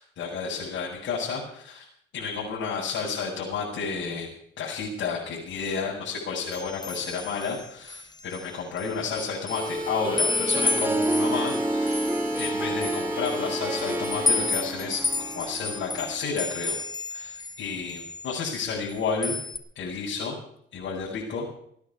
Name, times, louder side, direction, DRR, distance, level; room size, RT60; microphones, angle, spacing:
voice 1, 0.0-1.9 2.1-4.3 4.6-12.1 12.4-16.8 17.1-19.4 19.7-20.4 20.7-21.5, left 5 dB, 75° left, -6 dB, 6.7 m, -31 dB
sound 1, 6.5-8.4 8.8-9.8 10.2-17.6 17.9-18.9 19.2-19.6, left 3 dB, 20° left, 1.4 m, -31 dB
sound 2, 9.5-14.5, equal, 55° right, 6.5 m, -33 dB
Harp, 9.7-16.2, right 1 dB, 10° right, 1.6 m, -30 dB
17.5 x 10.5 x 7.2 m, 0.67 s
cardioid pair, 90°, 20 cm